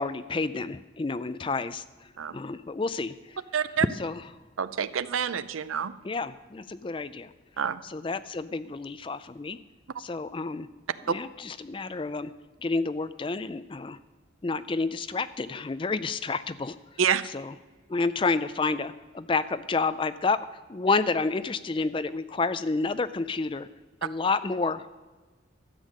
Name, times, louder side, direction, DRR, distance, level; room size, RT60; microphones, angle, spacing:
voice 1, 0.0-1.8 2.3-3.4 3.9-4.2 6.0-7.3 7.8-9.6 10.0-10.7 11.0-12.3 12.6-14.0 14.4-16.8 17.2-17.6 17.9-20.4 20.7-23.7 24.0-25.0, left 3 dB, 25° left, 13 dB, 0.4 m, -29 dB
voice 2, 3.5-3.8 4.6-5.9 7.6-7.8 17.0-17.2, right 7 dB, 90° right, 15 dB, 0.5 m, -27 dB
13.0 x 8.2 x 6.4 m, 1.3 s
head